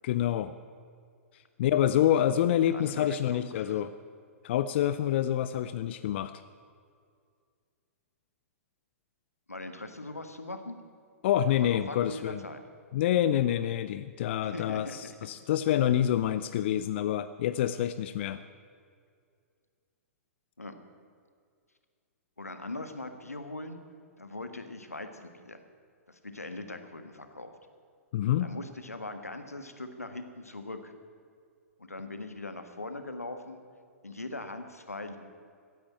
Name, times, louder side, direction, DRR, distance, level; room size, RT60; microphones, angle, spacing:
voice 1, 0.0-0.5 1.3-3.9 4.4-6.3 11.2-12.4 12.9-18.4 28.1-28.5, left 11 dB, 50° left, 13 dB, 0.5 m, -27 dB
voice 2, 2.7-3.8 9.5-10.8 11.5-12.6 14.4-15.2 20.6-20.8 22.4-23.8 24.2-25.6 26.1-27.5 28.4-30.9 31.8-33.6 34.0-35.2, left 2 dB, 90° left, 8 dB, 1.6 m, -41 dB
15.5 x 10.0 x 8.9 m, 2.2 s
figure-of-eight pair, 110°, 8 cm